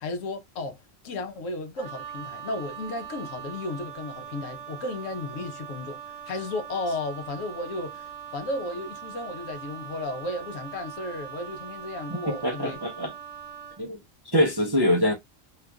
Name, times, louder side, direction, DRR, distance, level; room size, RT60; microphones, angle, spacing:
voice 1, 0.0-12.8, left 2 dB, 70° left, 1.1 m, -34 dB
Wind instrument woodwind instrument, 1.8-13.9, right 8 dB, 75° right, 1.1 m, -41 dB
voice 2, 12.1-13.1 13.8-14.0 14.3-15.1, equal, 35° right, 0.4 m, -24 dB
2.9 x 2.4 x 3.4 m
omnidirectional pair, 1.4 m